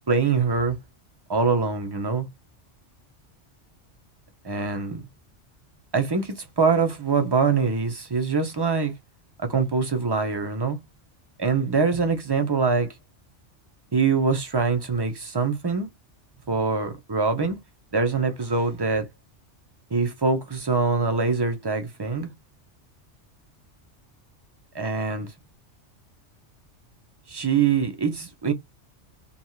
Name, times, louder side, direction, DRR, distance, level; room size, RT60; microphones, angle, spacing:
voice 1, 0.1-0.8 1.3-2.3 4.4-5.0 5.9-8.9 9.4-10.8 11.4-12.9 13.9-15.9 16.5-17.6 17.9-19.1 19.9-22.3 24.7-25.3 27.3-28.5, right 4 dB, 35° right, 0.4 m, -24 dB
2.6 x 2.3 x 3.0 m
omnidirectional pair, 1.2 m